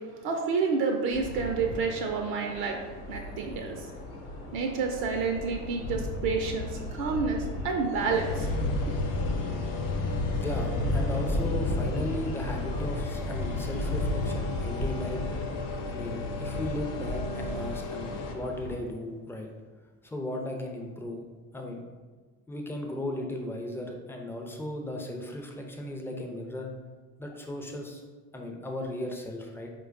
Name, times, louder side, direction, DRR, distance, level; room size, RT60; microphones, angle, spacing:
voice 1, 0.0-2.8 3.1-3.8 4.5-8.5, right 4 dB, 60° right, 3 dB, 0.5 m, -29 dB
sound 1, 1.1-18.8, left 1 dB, 85° left, 0.8 m, -33 dB
sound 2, 8.1-18.4, left 4 dB, 55° left, 0.6 m, -37 dB
voice 2, 10.3-15.3 15.9-19.5 20.0-21.3 21.5-21.9 22.5-26.7 27.2-28.0 28.3-29.7, left 1 dB, 5° left, 2 dB, 0.4 m, -36 dB
4.3 x 2.2 x 2.4 m, 1.4 s
hypercardioid pair, 70°, 40 cm